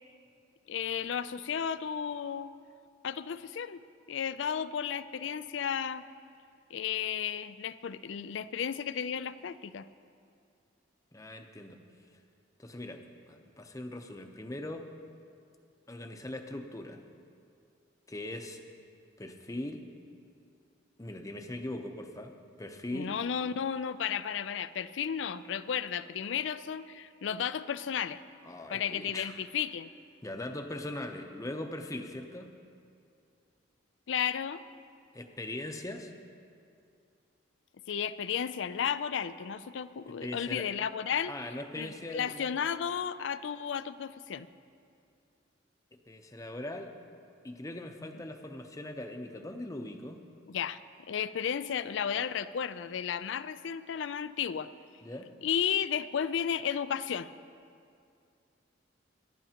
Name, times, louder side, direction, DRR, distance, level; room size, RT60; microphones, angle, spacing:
voice 1, 0.7-2.5 3.0-3.8 4.1-6.0 6.7-9.9 22.9-28.2 28.7-29.9 34.1-34.6 37.9-41.3 41.8-44.5 50.5-50.8 51.1-54.7 55.4-57.3, left 8 dB, 70° left, 15 dB, 0.4 m, -33 dB
voice 2, 11.1-11.8 12.6-14.9 15.9-17.0 18.1-18.6 19.2-19.9 21.0-22.3 22.6-23.2 28.4-29.3 30.2-32.6 35.1-36.1 40.2-40.7 41.3-42.5 46.1-46.9 47.4-50.3 55.0-55.3, left 1 dB, 15° left, 5 dB, 0.7 m, -40 dB
24.0 x 11.5 x 2.9 m, 2.4 s
head